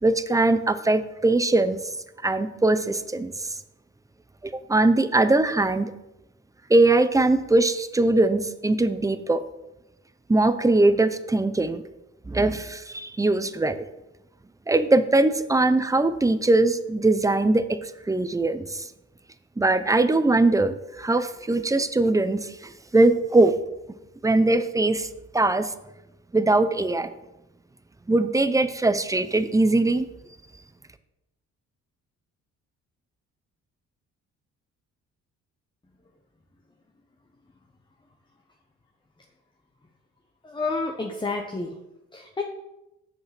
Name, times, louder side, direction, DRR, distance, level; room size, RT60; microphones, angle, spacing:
voice 1, 0.0-1.8 2.2-3.3 4.4-5.9 6.7-9.4 10.3-11.8 12.3-13.8 14.7-18.9 19.6-23.6 24.2-25.1 25.3-25.7 26.3-27.1 28.1-30.1, right 2 dB, 10° right, 12 dB, 0.6 m, -21 dB
voice 2, 40.4-41.8 42.1-42.4, left 3 dB, 15° left, 2 dB, 1.0 m, -29 dB
7.3 x 6.4 x 5.9 m, 0.94 s
cardioid pair, 90°, 30 cm